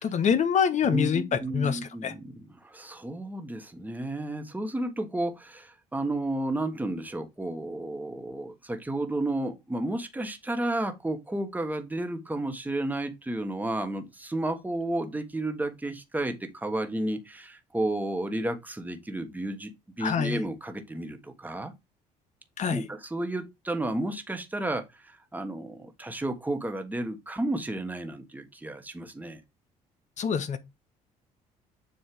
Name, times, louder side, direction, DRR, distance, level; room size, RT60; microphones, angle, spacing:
voice 1, 0.0-2.1 20.0-20.4 22.6-22.8 30.2-30.6, left 7 dB, 50° left, 0.9 m, -26 dB
voice 2, 0.9-19.7 20.0-21.7 22.7-29.4, right 1 dB, 10° right, 1.4 m, -32 dB
7.2 x 2.8 x 5.2 m
supercardioid pair, 80°, 16 cm